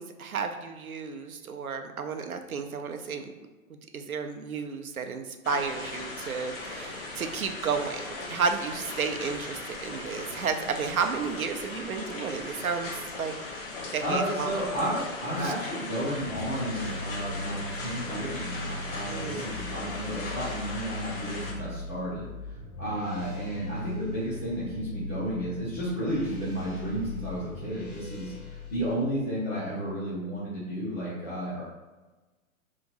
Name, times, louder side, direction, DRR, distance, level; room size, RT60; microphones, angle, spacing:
voice 1, 0.0-3.3 3.9-12.9 13.2-13.3 13.9-14.6 15.4-15.5 19.1-19.5, right 5 dB, 80° right, 6 dB, 0.5 m, -32 dB
sound 1, 5.4-21.5, left 2 dB, 40° left, 0.9 m, -38 dB
voice 2, 14.0-22.3 22.8-31.6, equal, 10° left, -9 dB, 0.4 m, -32 dB
sound 2, 16.1-28.9, left 2 dB, 80° left, 1.0 m, -40 dB
2.9 x 2.5 x 3.8 m, 1.2 s
figure-of-eight pair, 115°, 43 cm